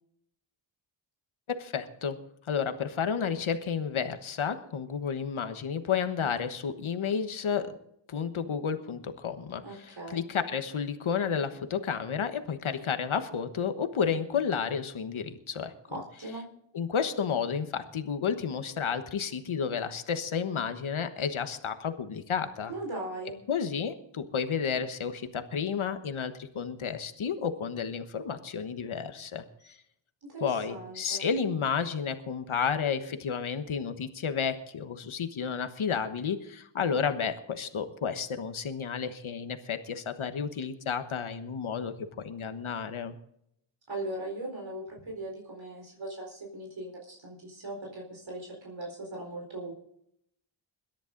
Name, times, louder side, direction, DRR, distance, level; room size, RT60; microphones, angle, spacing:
voice 1, 1.5-2.2 2.5-7.8 8.1-15.7 16.7-22.7 23.5-29.8 30.4-43.2, left 6 dB, 80° left, 9 dB, 1.3 m, -31 dB
voice 2, 9.6-10.2 15.9-16.5 22.7-23.4 30.2-31.3 43.9-49.7, right 2 dB, 65° right, -1 dB, 4.3 m, -39 dB
22.0 x 10.5 x 3.9 m, 0.73 s
wide cardioid pair, 70°, 48 cm